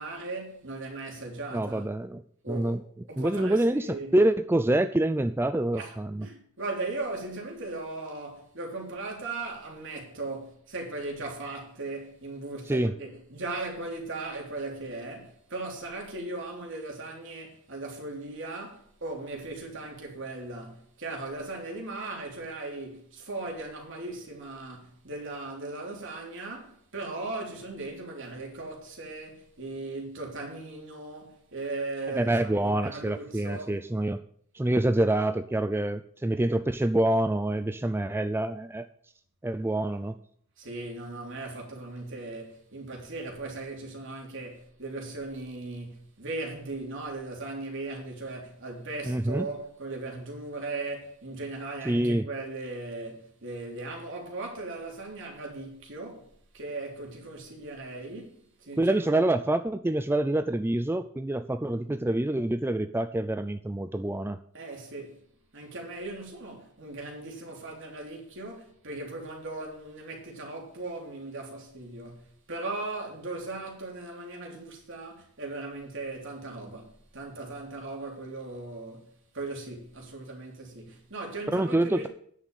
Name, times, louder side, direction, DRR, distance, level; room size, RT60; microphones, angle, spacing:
voice 1, 0.0-1.9 2.4-2.8 3.1-4.2 5.7-33.9 40.6-56.3 56.5-59.0 64.5-65.2 65.5-82.1, right 2 dB, 60° right, 3.3 m, -38 dB
voice 2, 1.5-2.8 3.2-6.3 12.7-12.9 32.2-34.2 34.5-38.9 39.4-40.2 49.1-49.5 51.9-52.3 58.8-64.4 81.5-82.1, right 1 dB, 10° right, 0.4 m, -26 dB
9.8 x 6.5 x 8.9 m
head